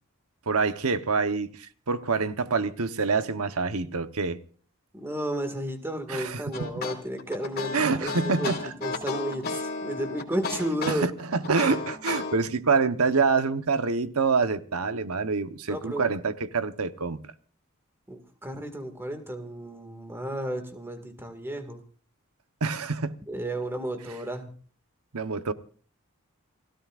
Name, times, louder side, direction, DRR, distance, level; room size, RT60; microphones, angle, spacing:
voice 1, 0.5-4.4 6.1-6.7 7.7-8.7 10.9-17.2 22.6-23.2 25.1-25.5, right 4 dB, 85° right, 1.0 m, -26 dB
voice 2, 4.9-8.5 8.8-11.1 15.7-16.1 18.1-21.8 23.3-24.5, right 1 dB, 10° right, 1.9 m, -33 dB
sound 1, 6.5-12.4, left 4 dB, 45° left, 2.8 m, -33 dB
29.5 x 15.5 x 2.5 m
head